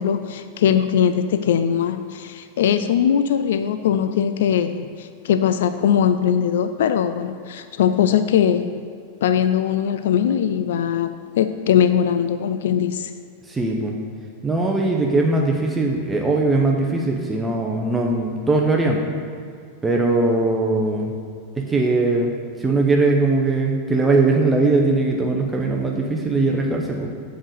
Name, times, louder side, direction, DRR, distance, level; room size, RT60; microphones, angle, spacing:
voice 1, 0.0-8.9 9.2-13.1, left 8 dB, 60° left, 10 dB, 0.3 m, -20 dB
voice 2, 13.5-13.9 14.4-19.1 19.8-21.1 21.6-22.3 22.6-27.1, right 3 dB, 15° right, 0 dB, 0.7 m, -20 dB
7.5 x 5.0 x 6.3 m, 2.2 s
figure-of-eight pair, 90°, 0 cm